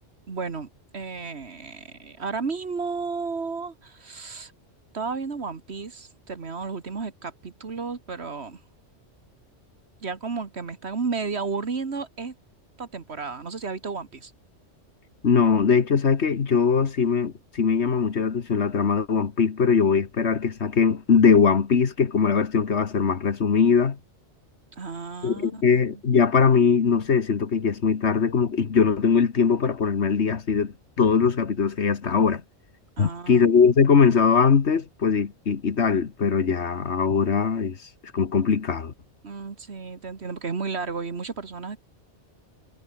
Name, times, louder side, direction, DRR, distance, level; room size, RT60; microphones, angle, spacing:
voice 1, 0.3-4.5 4.9-8.6 10.0-12.3 12.8-14.3 24.7-26.0 33.0-33.7 39.2-41.8, right 4 dB, 60° right, 2.0 m, -33 dB
voice 2, 15.2-24.0 25.2-32.4 33.0-37.8 38.1-38.9, left 6 dB, 65° left, 1.7 m, -21 dB
omnidirectional pair, 1.2 m